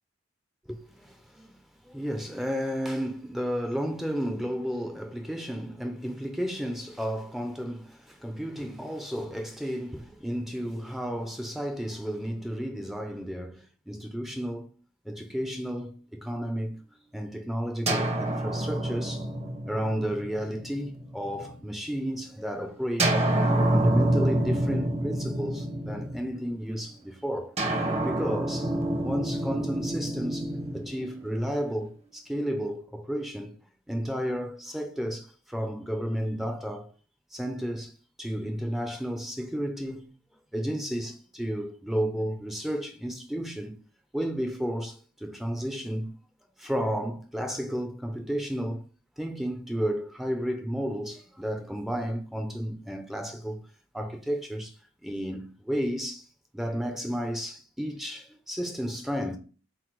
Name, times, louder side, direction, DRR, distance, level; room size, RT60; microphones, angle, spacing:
voice 1, 0.7-14.7 15.0-16.8 17.1-19.3 19.7-23.4 23.7-27.5 28.0-28.7 29.0-33.5 33.9-36.9 37.3-37.9 38.2-40.1 40.5-43.7 44.1-46.1 46.6-48.9 49.2-53.6 53.9-54.7 55.0-56.3 56.5-59.4, equal, ahead, 0.7 m, -32 dB
sound 1, 17.9-21.7 23.0-26.6 27.6-31.7, right 1 dB, 30° right, 1.1 m, -28 dB
7.8 x 2.8 x 4.7 m
head